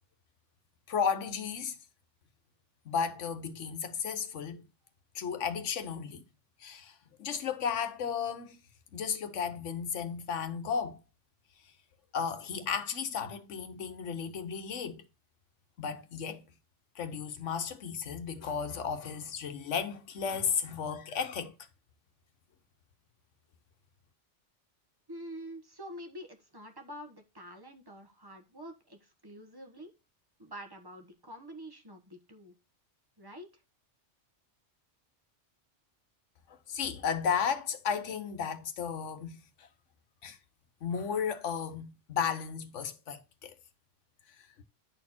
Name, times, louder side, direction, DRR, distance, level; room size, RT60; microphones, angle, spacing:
voice 1, 0.9-1.8 2.8-4.6 5.1-6.2 6.6-8.6 8.9-11.0 12.1-15.0 15.8-16.4 16.9-21.6 36.5-39.7 40.2-40.4 40.8-43.5, left 7 dB, 85° left, 1.3 m, -34 dB
voice 2, 25.1-29.9 30.4-32.5 33.2-33.5, equal, 20° right, 1.2 m, -47 dB
9.9 x 4.3 x 4.3 m
omnidirectional pair, 1.2 m